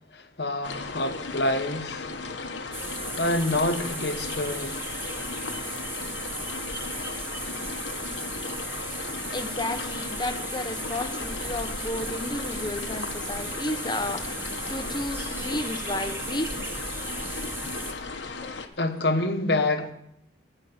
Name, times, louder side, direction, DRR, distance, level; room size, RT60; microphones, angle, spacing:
voice 1, 0.1-2.1 3.2-4.8 18.8-19.9, left 2 dB, 65° left, 1.2 m, -27 dB
sound 1, 0.6-18.7, left 3 dB, 85° left, 1.2 m, -36 dB
sound 2, 2.7-17.9, right 2 dB, 15° right, 0.9 m, -36 dB
voice 2, 8.7-17.3 17.7-17.8 18.1-18.6 19.8-19.9, left 1 dB, 25° left, 0.7 m, -33 dB
16.0 x 5.3 x 8.6 m
head